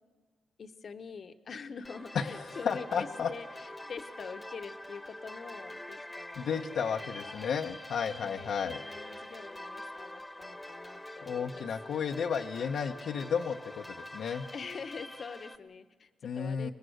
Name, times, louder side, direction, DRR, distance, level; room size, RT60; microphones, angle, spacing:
voice 1, 0.6-7.5 8.1-11.7 14.5-16.7, left 5 dB, 55° left, 9 dB, 1.1 m, -45 dB
sound 1, 1.8-15.6, left 1 dB, 10° left, 1.3 m, -45 dB
voice 2, 2.1-3.3 6.4-8.8 11.3-14.5 16.2-16.7, left 6 dB, 75° left, 3 dB, 0.9 m, -33 dB
23.5 x 20.5 x 7.9 m, 1.4 s
cardioid pair, 80°, 0 cm